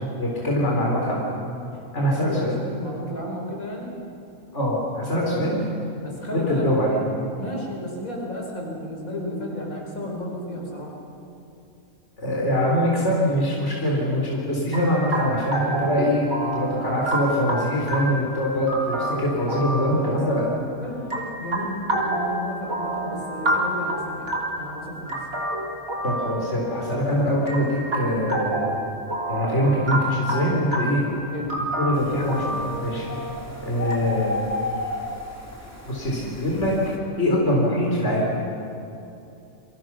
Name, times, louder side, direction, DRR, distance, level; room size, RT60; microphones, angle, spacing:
voice 1, 0.2-1.2 1.9-2.6 4.5-5.6 6.3-7.0 12.2-20.4 26.0-28.8 29.3-31.0 31.8-33.1 33.6-34.3 35.8-36.7 37.2-38.3, equal, 55° left, -3 dB, 4.4 m, -23 dB
voice 2, 2.2-3.9 6.0-6.8 7.4-10.9 19.9-25.2 31.3-31.6 33.0-33.2, left 1 dB, 75° left, -1 dB, 5.8 m, -33 dB
sound 1, 14.7-33.9, right 1 dB, 80° right, 3.8 m, -29 dB
sound 2, 31.9-37.0, left 2 dB, 10° left, 3.0 m, -33 dB
29.5 x 24.5 x 6.3 m, 2.8 s
omnidirectional pair, 1.5 m